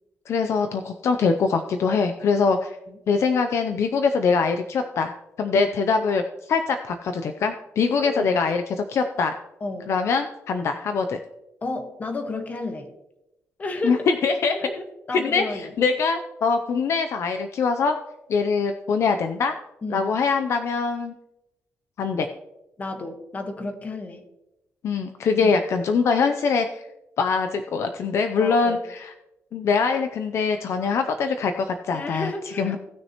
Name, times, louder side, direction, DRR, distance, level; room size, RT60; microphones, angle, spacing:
voice 1, 0.3-2.8 3.1-5.1 5.4-9.3 9.9-11.2 13.8-14.6 15.1-18.0 18.3-19.5 19.9-21.1 22.0-22.3 24.8-26.8 27.2-29.1 29.5-32.8, left 5 dB, 65° left, 6 dB, 0.6 m, -23 dB
voice 2, 9.6-9.9 11.6-12.9 13.6-14.1 14.6-15.7 19.8-20.1 22.8-24.2 25.4-25.5 28.4-28.8 31.9-32.8, left 2 dB, 30° left, 5 dB, 1.3 m, -32 dB
17.5 x 6.4 x 3.0 m, 0.91 s
wide cardioid pair, 155°, 5 cm